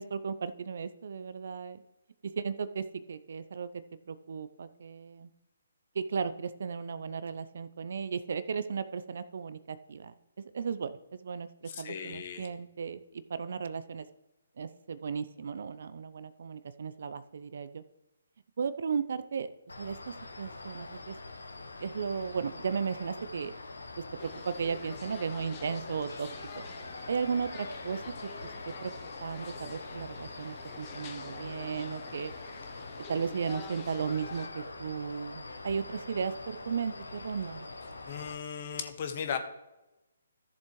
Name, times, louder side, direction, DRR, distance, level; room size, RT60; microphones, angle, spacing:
voice 1, 0.0-1.8 2.4-3.7 4.1-5.3 6.0-10.1 10.5-11.5 11.8-13.0 13.3-14.1 14.6-17.8 18.6-19.5 19.8-20.0 20.4-21.1 21.8-23.5 24.2-26.3 26.6-26.7 27.1-28.0 28.8-28.9 29.2-32.3 33.1-37.7, right 6 dB, 60° right, 13 dB, 0.6 m, -35 dB
voice 2, 11.6-12.5 38.1-39.4, left 7 dB, 45° left, 7 dB, 1.3 m, -36 dB
sound 1, 19.7-38.3, left 2 dB, 80° left, 1.2 m, -44 dB
sound 2, 24.2-34.5, left 7 dB, 30° left, 0.9 m, -49 dB
14.0 x 7.0 x 3.1 m, 0.98 s
figure-of-eight pair, 140°, 0 cm